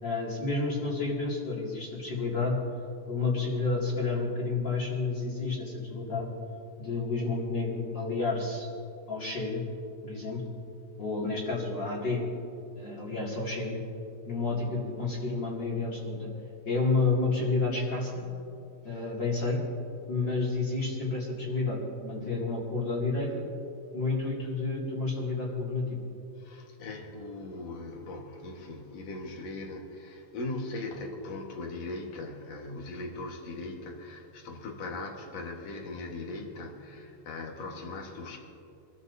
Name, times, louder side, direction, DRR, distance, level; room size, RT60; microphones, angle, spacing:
voice 1, 0.0-2.6 3.1-6.3 6.8-8.7 9.1-9.6 10.0-10.4 11.0-12.2 12.8-13.8 14.3-16.3 16.7-18.2 18.8-19.6 20.1-23.4 23.9-26.0, left 3 dB, 35° left, -4 dB, 2.2 m, -30 dB
voice 2, 26.4-38.4, left 2 dB, 60° left, 1 dB, 1.8 m, -39 dB
26.0 x 14.5 x 2.7 m, 2.7 s
omnidirectional pair, 4.9 m